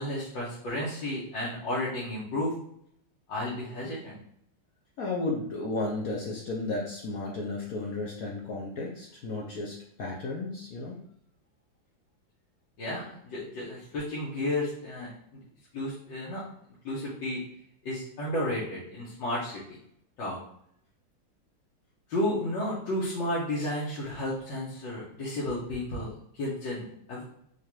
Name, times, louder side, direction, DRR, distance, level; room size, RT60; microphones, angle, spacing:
voice 1, 0.0-2.5 3.3-4.2 12.8-15.1 15.7-16.4 16.8-17.4 17.9-19.6 20.2-20.4 22.1-26.1 26.4-27.2, left 1 dB, 80° left, -8 dB, 1.7 m, -32 dB
voice 2, 5.0-11.0, left 2 dB, 65° left, -2 dB, 0.9 m, -33 dB
4.6 x 2.5 x 2.9 m, 0.69 s
omnidirectional pair, 2.1 m